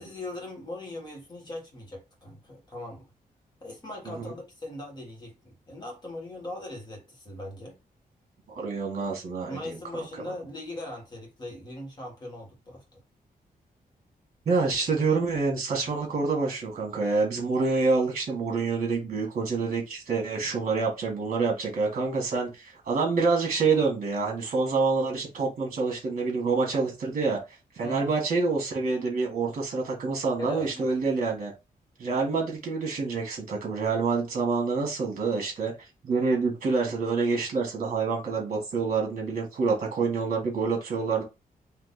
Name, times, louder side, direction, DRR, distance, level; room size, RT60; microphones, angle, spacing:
voice 1, 0.0-3.0 3.6-7.7 9.5-13.0 27.8-28.1 30.4-30.9, left 1 dB, 25° left, 1.6 m, -40 dB
voice 2, 8.5-10.0 14.4-27.4 27.7-31.5 32.0-35.7 36.0-41.2, right 4 dB, 50° right, 1.6 m, -27 dB
3.7 x 2.9 x 4.0 m
wide cardioid pair, 180°, 16 cm